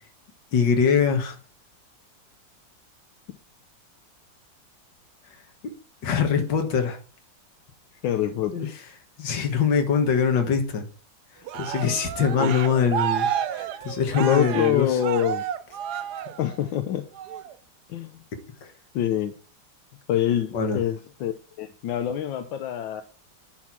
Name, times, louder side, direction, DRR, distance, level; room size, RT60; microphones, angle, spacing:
voice 1, 0.5-1.4 6.0-7.0 8.5-8.7 9.2-10.9 11.5-15.0 18.6-18.7 20.5-20.8, left 6 dB, 70° left, 6 dB, 2.1 m, -23 dB
voice 2, 8.0-8.8 12.4-12.5 14.2-15.4 16.4-17.1 17.9-18.2 18.9-19.3 20.1-23.0, left 11 dB, 85° left, 8 dB, 1.4 m, -26 dB
Cheering, 11.5-16.7 17.2-17.5, right 9 dB, 70° right, 1.1 m, -30 dB
10.0 x 4.3 x 6.0 m, 0.39 s
omnidirectional pair, 2.0 m